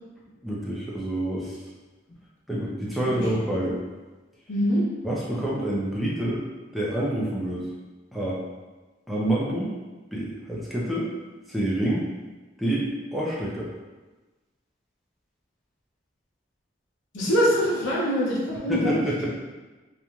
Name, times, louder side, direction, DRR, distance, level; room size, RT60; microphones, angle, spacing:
voice 1, 0.4-1.6 2.5-3.8 5.0-6.4 6.7-7.7 8.1-8.4 9.1-9.7 10.1-11.1 11.5-12.1 12.6-13.7 18.6-19.3, right 1 dB, ahead, -6 dB, 0.4 m, -27 dB
voice 2, 4.5-4.8 17.1-19.0, equal, 90° left, -6 dB, 0.8 m, -23 dB
2.9 x 2.5 x 2.2 m, 1.2 s
head